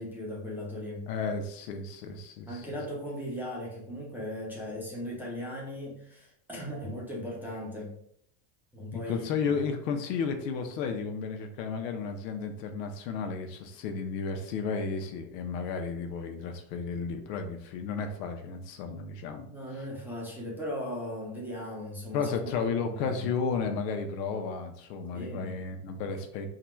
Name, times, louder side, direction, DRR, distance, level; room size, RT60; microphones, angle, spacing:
voice 1, 0.0-1.1 2.5-8.0 8.7-9.3 19.5-22.3 22.7-23.2 25.1-25.5, left 1 dB, 5° right, -4 dB, 0.7 m, -38 dB
voice 2, 1.1-2.8 8.9-19.5 22.1-26.5, left 5 dB, 85° left, 5 dB, 0.8 m, -33 dB
3.8 x 2.3 x 4.4 m, 0.68 s
supercardioid pair, 155°, 48 cm